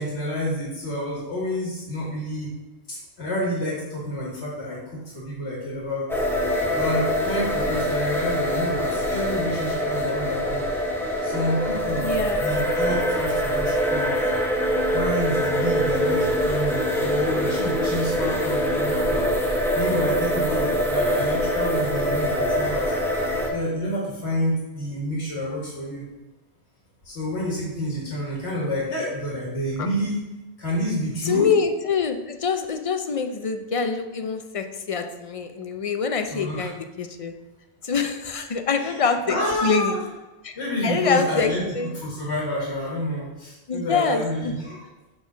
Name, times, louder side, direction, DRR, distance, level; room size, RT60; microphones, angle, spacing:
voice 1, 0.0-2.5 2.9-6.1 6.7-10.7 11.2-14.3 14.9-19.3 19.7-26.1 27.0-30.2 30.6-31.5 36.3-36.7 38.8-40.0 40.6-41.6 41.9-44.9, equal, 80° left, -5 dB, 1.8 m, -29 dB
sound 1, 6.1-23.5, equal, ahead, 0.9 m, -24 dB
voice 2, 12.0-12.5 31.2-37.3 37.8-39.9 40.4-40.5 40.8-41.9 43.7-44.5, left 5 dB, 45° left, 7 dB, 0.5 m, -25 dB
6.3 x 3.8 x 5.8 m, 1.1 s
omnidirectional pair, 1.1 m